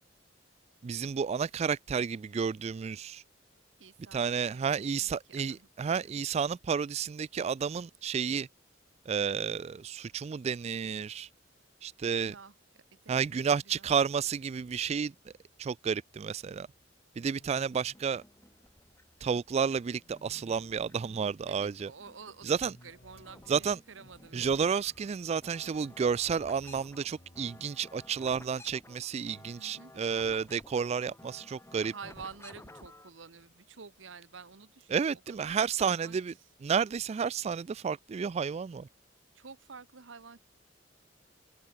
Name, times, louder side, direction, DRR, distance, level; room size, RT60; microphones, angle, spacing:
voice 1, 0.8-3.2 4.1-8.5 9.1-11.3 11.8-12.3 13.1-15.1 15.6-16.7 17.2-18.2 19.2-21.9 22.4-22.7 23.5-23.8 24.3-31.9 34.9-36.3 36.6-38.9, right 6 dB, 35° right, 0.3 m, -31 dB
voice 2, 3.8-6.1 12.1-12.5 13.0-13.9 21.5-23.6 23.9-24.5 29.5-29.9 31.8-35.5 35.8-36.5 39.3-40.4, right 5 dB, 90° right, 1.1 m, -50 dB
sound 1, 13.9-28.5, equal, 40° left, 4.5 m, -62 dB
sound 2, 17.7-19.2 19.7-21.2 21.6-22.9 23.2-33.1, left 1 dB, 15° left, 2.6 m, -54 dB
head